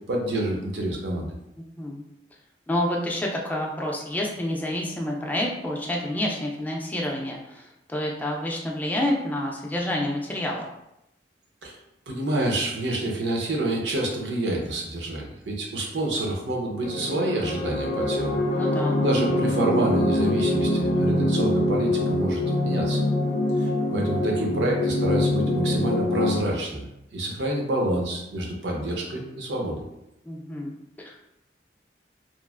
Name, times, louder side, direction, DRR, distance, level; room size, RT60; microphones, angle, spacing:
voice 1, 0.1-1.3 11.6-11.8 12.1-18.4 18.9-23.0 23.6-29.8, right 1 dB, 80° right, 0 dB, 0.7 m, -28 dB
voice 2, 1.6-2.0 2.7-10.7 18.6-19.0 30.3-30.7 31.0-31.2, left 1 dB, 10° left, -1 dB, 0.4 m, -28 dB
sound 1, 16.8-26.4, left 1 dB, 75° left, 0.4 m, -24 dB
3.0 x 2.4 x 2.4 m, 0.86 s
head